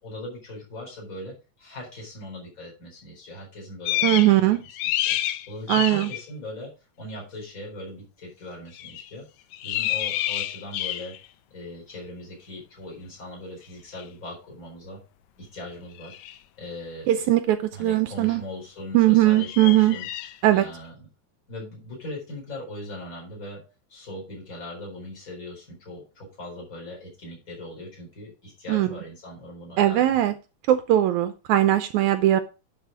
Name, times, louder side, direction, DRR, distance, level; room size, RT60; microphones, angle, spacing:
voice 1, 0.0-5.2 5.5-6.7 7.0-9.2 9.6-11.1 11.5-15.0 15.4-16.2 16.6-17.3 17.7-20.1 20.5-21.1 21.5-23.6 23.9-30.2, left 1 dB, 25° left, -2 dB, 4.6 m, -40 dB
sound 1, 3.8-4.4 4.6-6.2 8.8-9.1 9.5-11.2 14.0-14.1 16.0-16.4 19.3-20.3, left 13 dB, 80° left, 2.0 m, -29 dB
voice 2, 4.0-4.6 5.7-6.1 17.1-18.4 18.9-20.0 20.4-20.6 28.7-28.9 29.8-30.3 30.7-32.4, right 14 dB, 80° right, 10 dB, 2.0 m, -20 dB
11.0 x 5.4 x 4.9 m, 0.31 s
omnidirectional pair, 3.5 m